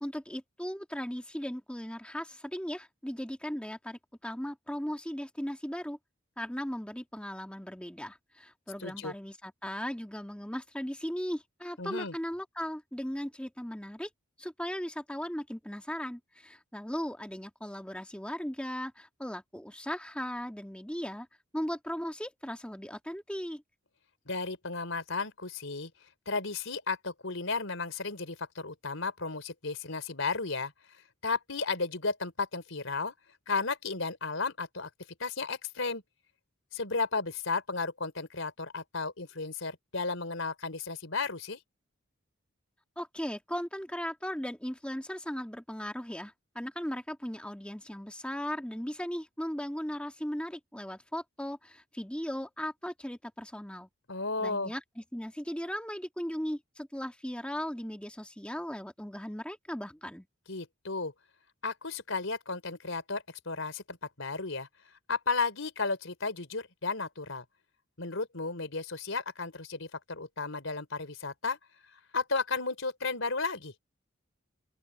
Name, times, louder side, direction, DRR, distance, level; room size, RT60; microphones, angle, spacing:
voice 1, 0.0-6.0 6.4-14.1 14.4-21.3 21.5-23.6 43.0-53.9 54.4-60.3, equal, 5° left, 1.8 m, -37 dB
voice 2, 8.8-9.1 11.8-12.1 24.3-25.9 26.3-30.7 31.2-33.1 33.5-34.9 35.2-36.0 36.7-41.6 54.1-54.7 60.5-61.1 61.6-64.7 65.1-67.4 68.0-71.6 72.1-73.7, left 4 dB, 75° left, 3.8 m, -34 dB
open air
head